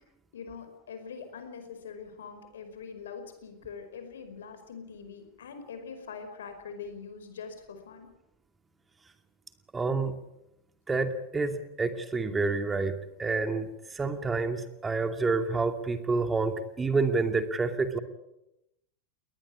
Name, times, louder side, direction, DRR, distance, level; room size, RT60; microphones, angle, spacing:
voice 1, 0.3-8.1, left 6 dB, 75° left, 8 dB, 5.0 m, -43 dB
voice 2, 9.7-10.1 10.9-12.9 13.2-13.7 13.9-18.0, right 3 dB, 15° right, 8 dB, 2.5 m, -28 dB
21.5 x 19.5 x 8.7 m, 0.86 s
hypercardioid pair, 90°, 0 cm